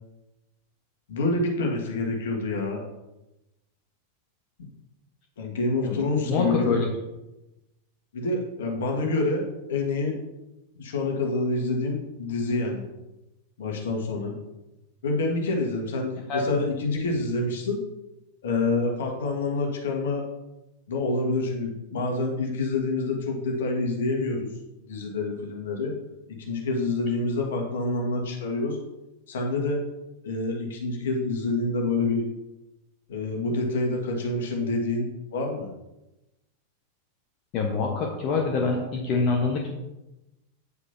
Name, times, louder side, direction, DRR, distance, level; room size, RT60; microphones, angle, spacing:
voice 1, 1.1-2.8 4.6-4.7 5.4-6.7 8.1-10.2 10.8-12.9 13.6-14.4 15.0-17.8 18.4-20.2 20.9-24.5 24.9-25.9 26.3-28.8 29.3-29.8 30.2-32.3 33.1-35.7, left 3 dB, 60° left, 1 dB, 1.9 m, -27 dB
voice 2, 5.8-6.9 16.3-16.4 37.5-39.7, left 4 dB, 40° left, 0 dB, 1.2 m, -26 dB
9.6 x 8.1 x 2.8 m, 0.97 s
figure-of-eight pair, 90°, 0 cm